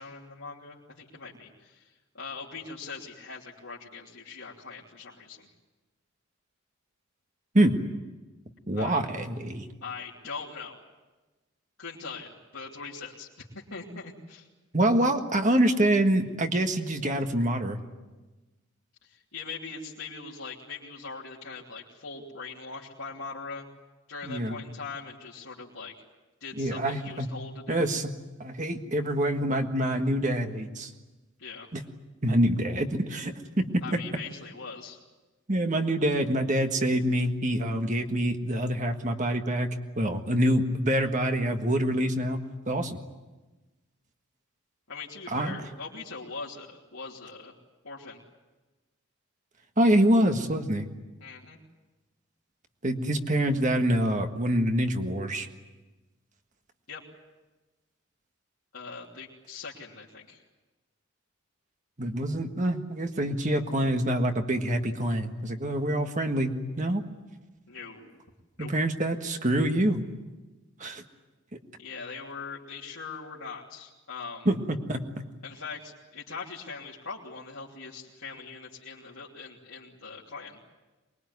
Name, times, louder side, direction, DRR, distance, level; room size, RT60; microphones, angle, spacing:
voice 1, 0.0-5.5 8.7-9.0 9.8-10.8 11.8-13.3 13.5-14.5 19.0-23.7 24.1-25.9 26.4-27.9 31.4-31.7 33.8-35.0 44.9-47.5 47.8-48.2 51.2-51.6 56.9-57.0 58.7-60.4 67.7-68.1 68.6-68.7 71.8-74.5 75.4-80.6, left 4 dB, 80° left, -6 dB, 3.0 m, -41 dB
voice 2, 8.7-9.6 14.7-17.8 24.3-24.5 26.6-27.3 27.7-28.1 28.4-30.9 31.7-31.8 32.2-34.0 35.5-39.7 40.0-42.4 42.7-43.0 45.3-45.6 49.8-50.9 52.8-55.5 62.0-66.5 66.8-67.0 68.6-70.0 70.8-71.0 74.4-75.0, right 1 dB, 35° right, 5 dB, 1.6 m, -26 dB
23.5 x 21.5 x 9.6 m, 1.2 s
head